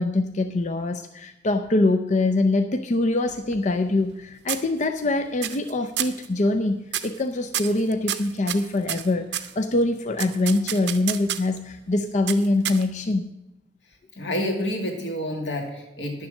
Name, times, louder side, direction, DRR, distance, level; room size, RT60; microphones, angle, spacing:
voice 1, 0.0-13.3, left 2 dB, 45° left, 7 dB, 0.5 m, -24 dB
sound 1, 3.3-4.2 4.5-5.1 5.4-5.7 6.0-6.3 6.9-7.2 7.5-9.5 10.2-11.6 12.3-13.1, right 11 dB, 75° right, 0.7 m, -30 dB
voice 2, 14.2-16.3, left 1 dB, 85° left, 2 dB, 2.3 m, -28 dB
10.5 x 7.1 x 6.5 m, 0.91 s
head